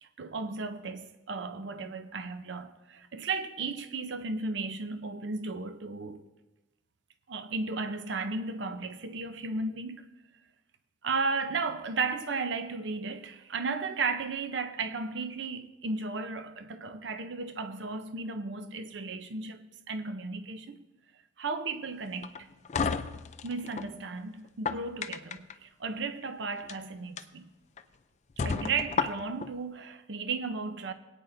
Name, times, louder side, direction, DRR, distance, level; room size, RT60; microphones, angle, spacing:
voice 1, 0.0-6.3 7.3-10.1 11.0-19.6 19.9-20.8 21.4-22.3 23.4-27.4 28.4-30.9, right 4 dB, 65° right, 0.6 m, -34 dB
sound 1, 22.2-23.9 24.4-25.5 26.5-26.7 27.2-27.3 27.8-27.9 28.4-29.5, left 5 dB, 35° left, 0.4 m, -32 dB
20.5 x 9.0 x 2.6 m
head